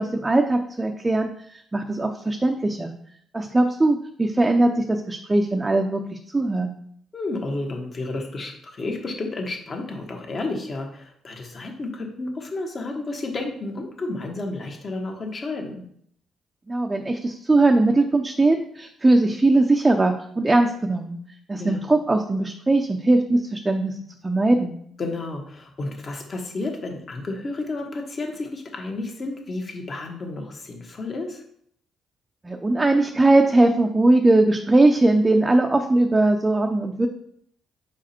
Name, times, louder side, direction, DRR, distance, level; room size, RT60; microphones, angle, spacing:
voice 1, 0.0-2.9 3.3-6.7 16.7-21.2 21.5-24.0 24.2-24.7 32.4-37.1, right 2 dB, 20° right, 4 dB, 0.6 m, -20 dB
voice 2, 7.1-15.8 21.6-21.8 25.0-31.4, left 2 dB, 40° left, 2 dB, 1.5 m, -31 dB
5.2 x 5.0 x 4.3 m, 0.66 s
cardioid pair, 90°, 0 cm